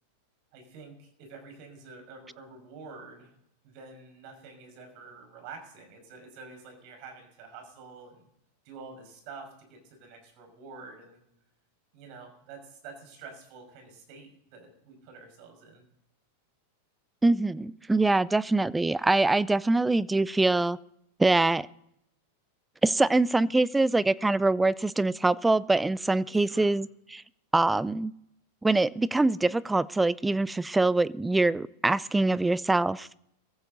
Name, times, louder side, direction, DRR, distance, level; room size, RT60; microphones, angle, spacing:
voice 1, 0.5-3.3 3.6-8.3 8.6-11.2 11.9-15.8 26.3-26.7, right 4 dB, 55° right, 4 dB, 5.9 m, -48 dB
voice 2, 17.2-20.8 21.2-21.7 22.8-27.2 27.5-28.1 28.6-33.1, right 2 dB, 10° right, 20 dB, 0.5 m, -24 dB
18.0 x 14.5 x 4.0 m, 0.76 s
hypercardioid pair, 100°, 0 cm